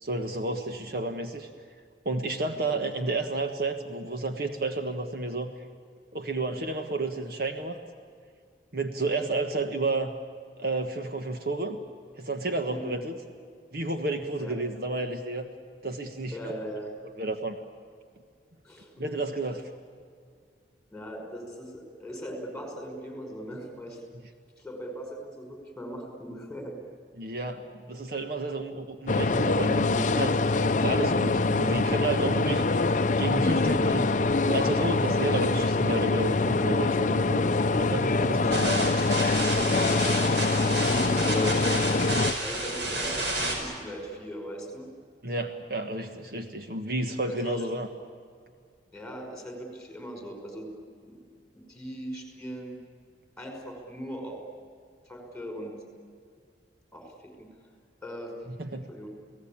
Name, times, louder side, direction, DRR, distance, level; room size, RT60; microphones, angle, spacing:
voice 1, 0.0-1.5 2.0-5.5 6.1-7.8 8.7-10.1 10.6-11.8 12.2-13.1 13.7-15.5 15.8-16.4 17.2-17.6 19.0-19.6 27.2-32.6 33.2-34.1 34.4-38.9 45.2-47.9 58.5-58.9, right 2 dB, 55° right, 5 dB, 1.5 m, -31 dB
voice 2, 2.5-2.9 12.7-13.0 14.4-14.5 16.3-16.9 18.6-19.2 20.9-24.0 24.6-26.7 38.1-39.0 39.3-41.6 42.4-44.9 47.3-47.6 48.9-50.7 51.0-51.2 51.5-52.8 53.4-54.4 55.1-55.8 56.9-57.5 58.0-58.3 58.9-59.1, equal, 5° left, 2 dB, 5.4 m, -39 dB
sound 1, 29.1-42.3, left 3 dB, 45° left, 0.6 m, -24 dB
sound 2, 38.5-43.5, right 2 dB, 80° right, 5.4 m, -31 dB
30.0 x 18.0 x 8.8 m, 2.2 s
head